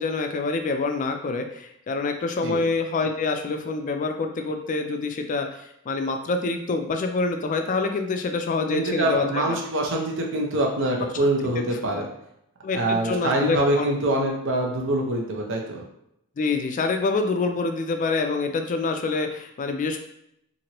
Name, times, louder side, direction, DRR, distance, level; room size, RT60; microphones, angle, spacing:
voice 1, 0.0-9.6 12.6-13.9 16.4-20.0, left 3 dB, 35° left, 5 dB, 0.3 m, -26 dB
voice 2, 8.7-12.1 12.7-15.8, right 1 dB, 60° right, 0 dB, 0.6 m, -24 dB
2.9 x 2.6 x 2.9 m, 0.78 s
head